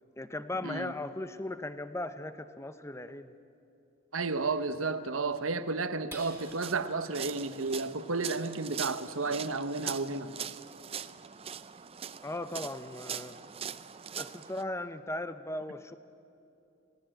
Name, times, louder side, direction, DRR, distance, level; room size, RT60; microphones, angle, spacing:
voice 1, 0.2-3.3 12.2-13.4 14.2-16.0, left 1 dB, 15° left, 11 dB, 0.7 m, -37 dB
voice 2, 4.1-10.3, right 3 dB, 75° right, 11 dB, 1.1 m, -32 dB
sound 1, 6.2-14.6, right 8 dB, 30° right, 0.5 m, -42 dB
sound 2, 12.2-12.8 13.3-13.4 13.8-14.3, right 2 dB, 10° right, 2.7 m, -56 dB
26.5 x 18.0 x 8.9 m, 2.7 s
head